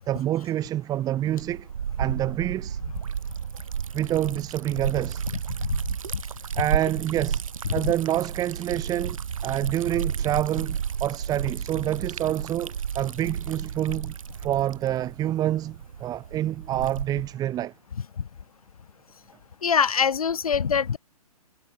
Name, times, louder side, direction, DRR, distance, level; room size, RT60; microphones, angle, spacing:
voice 1, 0.1-1.7 2.0-2.8 3.9-5.3 6.6-7.4 7.7-17.7, right 12 dB, 20° right, 2.1 m, -27 dB
Liquid, 1.2-17.3, right 7 dB, 60° right, 3.2 m, -32 dB
voice 2, 19.6-21.0, left 7 dB, 65° left, 1.1 m, -23 dB
figure-of-eight pair, 120°, 20 cm